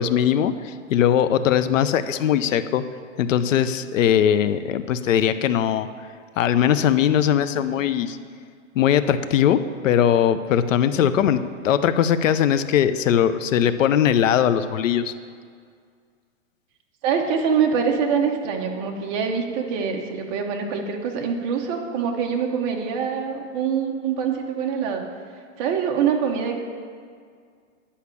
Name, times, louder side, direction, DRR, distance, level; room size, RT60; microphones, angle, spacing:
voice 1, 0.0-2.8 3.2-5.9 6.4-8.2 8.8-15.1, left 9 dB, 85° left, 12 dB, 0.7 m, -20 dB
voice 2, 17.0-25.0 25.6-26.6, right 6 dB, 30° right, 2 dB, 1.0 m, -24 dB
10.0 x 5.7 x 8.4 m, 2.1 s
supercardioid pair, 165°, 37 cm